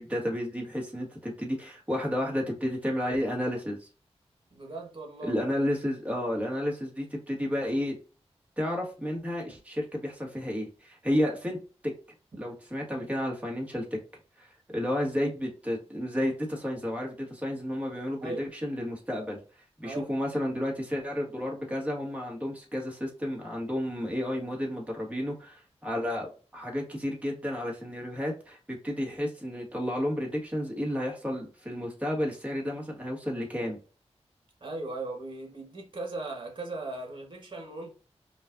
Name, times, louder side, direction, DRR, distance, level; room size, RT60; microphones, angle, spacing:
voice 1, 0.0-3.9 5.2-7.9 8.6-11.6 12.4-14.0 14.4-19.4 19.8-33.8, left 1 dB, 10° right, 1.6 m, -31 dB
voice 2, 4.5-5.3 18.2-18.5 19.8-20.1 34.6-37.9, right 2 dB, 45° right, 1.4 m, -38 dB
5.3 x 2.5 x 2.6 m
wide cardioid pair, 70°, 11 cm